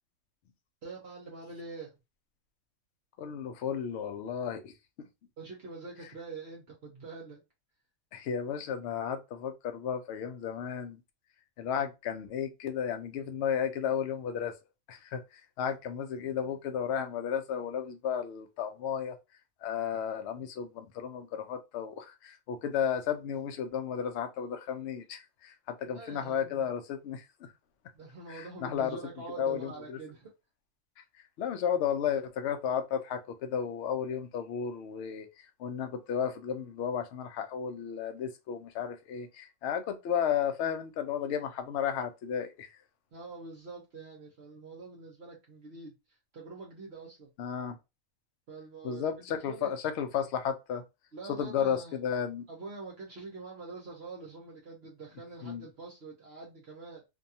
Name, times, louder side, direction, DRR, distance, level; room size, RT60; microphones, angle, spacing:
voice 1, 0.8-1.9 5.4-7.4 25.8-26.7 27.9-30.3 43.1-47.3 48.5-49.7 51.1-52.0 52.5-57.0, right 3 dB, 55° right, 0.8 m, -45 dB
voice 2, 3.2-4.7 5.0-5.1 8.1-11.0 11.6-14.5 14.9-19.2 19.6-27.5 28.3-29.0 29.4-30.0 31.4-35.3 35.6-42.7 47.4-47.8 48.8-50.8 51.4-52.4 55.4-55.6, left 8 dB, 65° left, 0.7 m, -33 dB
2.6 x 2.3 x 2.7 m
omnidirectional pair, 1.5 m